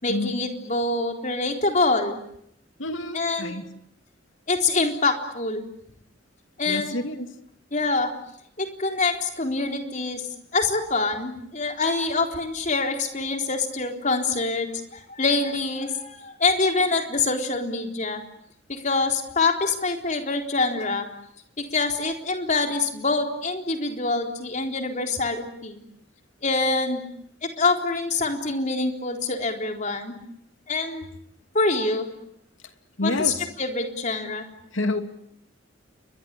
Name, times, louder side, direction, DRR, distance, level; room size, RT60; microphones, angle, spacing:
voice 1, 0.0-2.2 3.1-3.6 4.5-5.7 6.6-7.0 7.7-8.1 8.6-10.2 10.5-18.2 18.7-21.1 21.6-25.8 26.4-27.0 27.4-30.1 30.7-31.2 31.5-32.1 33.0-34.5, left 3 dB, 40° left, 4 dB, 4.0 m, -25 dB
voice 2, 2.8-3.7 6.7-7.3 33.0-33.5 34.7-35.0, left 2 dB, 85° left, 8 dB, 2.7 m, -28 dB
30.0 x 23.0 x 8.4 m, 0.72 s
head